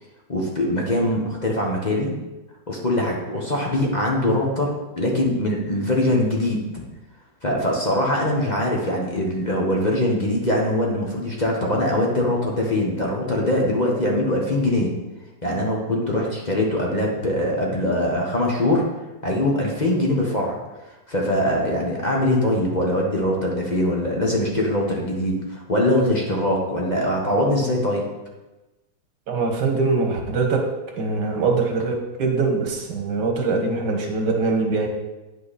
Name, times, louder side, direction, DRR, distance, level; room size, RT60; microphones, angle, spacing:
voice 1, 0.3-2.1 2.7-6.6 7.4-14.9 15.4-18.8 19.2-20.6 21.1-28.0, left 1 dB, 30° left, -1 dB, 1.1 m, -22 dB
voice 2, 29.3-30.6 31.0-34.9, right 4 dB, 85° right, 2 dB, 1.8 m, -22 dB
9.4 x 5.6 x 4.2 m, 1.1 s
omnidirectional pair, 1.8 m